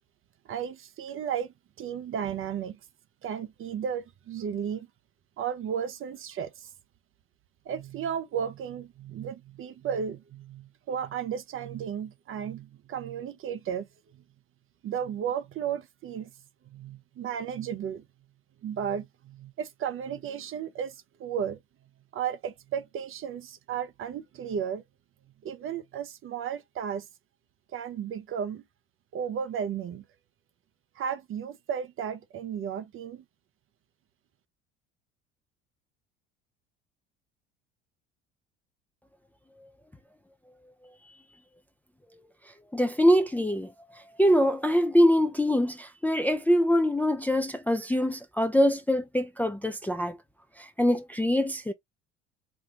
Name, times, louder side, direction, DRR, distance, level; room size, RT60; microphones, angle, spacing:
voice 1, 0.5-2.8 3.2-4.9 5.4-6.7 7.7-13.9 14.1-14.2 14.8-16.3 16.7-18.0 18.6-21.6 22.1-24.8 25.4-27.1 27.7-28.6 29.1-30.0 31.0-33.2, right 8 dB, 40° right, 0.6 m, -34 dB
voice 2, 42.7-50.2 50.6-51.7, equal, 5° left, 0.4 m, -24 dB
4.4 x 2.1 x 2.8 m
hypercardioid pair, 65°, 34 cm